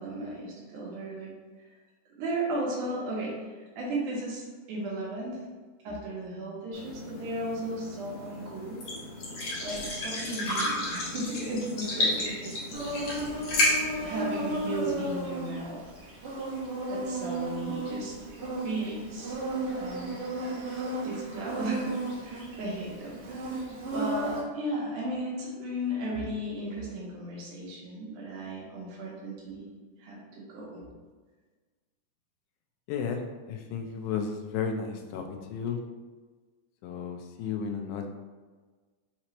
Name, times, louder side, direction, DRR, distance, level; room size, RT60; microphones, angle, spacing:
voice 1, 0.0-1.3 2.2-5.4 5.8-8.8 9.6-12.6 14.0-15.8 16.9-18.3 18.6-19.4 19.7-20.2 21.0-23.6 23.9-29.7 30.0-30.8, right 1 dB, 80° right, -4 dB, 2.5 m, -35 dB
sound 1, 6.7-15.2, left 1 dB, 60° left, 2.4 m, -32 dB
Insect, 12.7-24.4, right 1 dB, 55° right, 2.0 m, -34 dB
voice 2, 32.9-35.8 36.8-38.1, left 6 dB, 85° left, 4 dB, 2.0 m, -33 dB
5.9 x 2.9 x 2.9 m, 1.4 s
omnidirectional pair, 3.5 m